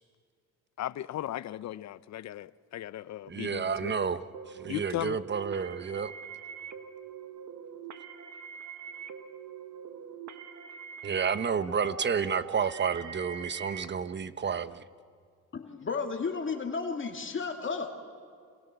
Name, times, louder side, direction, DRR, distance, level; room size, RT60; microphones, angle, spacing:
voice 1, 0.8-3.9 4.7-5.2, left 13 dB, 65° left, 0.7 m, -37 dB
voice 2, 3.3-4.2 4.6-6.1 11.0-14.8, right 6 dB, 35° right, 1.1 m, -30 dB
sound 1, 4.3-13.9, right 6 dB, 70° right, 1.5 m, -43 dB
voice 3, 15.5-17.9, left 5 dB, 40° left, 2.4 m, -33 dB
30.0 x 27.5 x 6.9 m
cardioid pair, 90°, 30 cm